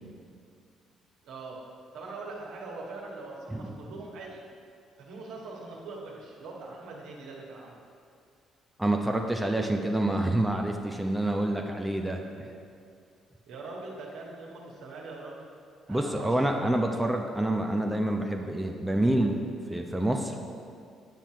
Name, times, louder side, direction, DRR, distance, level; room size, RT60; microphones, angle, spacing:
voice 1, 1.2-1.6 1.9-4.4 5.0-7.8 13.5-15.4 15.9-16.7, right 3 dB, 65° right, -2 dB, 1.7 m, -42 dB
voice 2, 8.8-12.5 15.9-19.4 19.7-20.3, right 1 dB, 5° right, 2 dB, 0.9 m, -27 dB
9.2 x 7.4 x 4.6 m, 2.4 s
hypercardioid pair, 45°, 0 cm